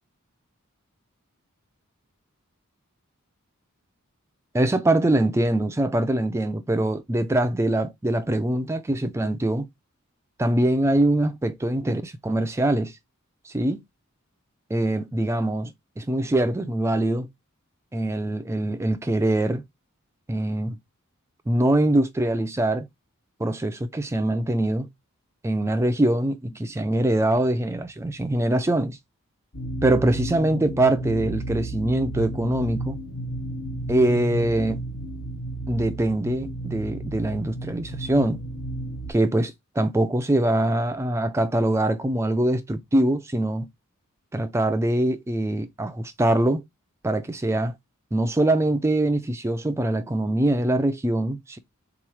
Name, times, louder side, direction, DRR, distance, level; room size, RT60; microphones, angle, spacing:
voice 1, 4.5-9.7 10.4-13.0 13.4-13.8 14.7-17.3 17.9-19.6 20.3-20.8 21.5-22.9 23.4-24.9 25.4-29.0 29.8-33.0 33.9-34.8 35.7-38.4 39.1-43.7 44.3-46.6 47.0-47.7 48.1-51.6, right 1 dB, 15° right, 0.3 m, -23 dB
sound 1, 29.5-39.1, right 1 dB, 70° left, 1.0 m, -33 dB
3.9 x 2.9 x 4.7 m
head